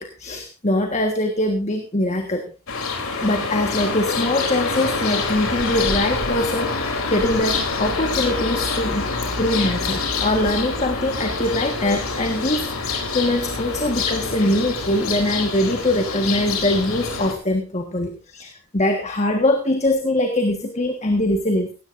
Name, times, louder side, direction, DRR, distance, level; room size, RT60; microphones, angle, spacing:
voice 1, 0.0-2.4 3.2-21.7, left 1 dB, 30° left, 4 dB, 1.4 m, -23 dB
sound 1, 2.7-17.3, left 4 dB, 70° left, 3.4 m, -26 dB
17.5 x 16.0 x 2.6 m, 0.32 s
head